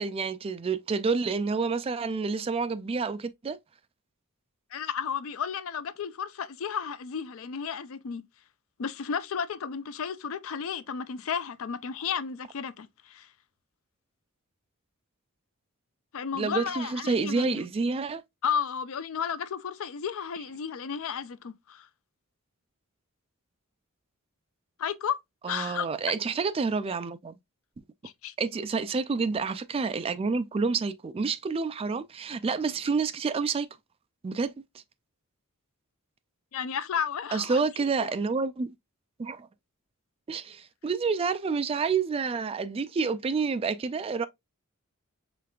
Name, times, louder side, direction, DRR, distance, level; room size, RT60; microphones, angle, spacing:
voice 1, 0.0-3.6 16.3-18.2 25.4-27.3 28.4-33.7 34.2-34.5 37.3-38.7 39.2-39.5 40.3-44.3, right 4 dB, 25° right, 0.3 m, -29 dB
voice 2, 4.7-8.2 8.8-13.3 16.1-17.6 18.4-21.9 24.8-25.2 25.5-25.9 28.0-28.3 36.5-37.6 38.0-38.1, left 7 dB, 65° left, 0.4 m, -33 dB
5.1 x 3.3 x 2.3 m
head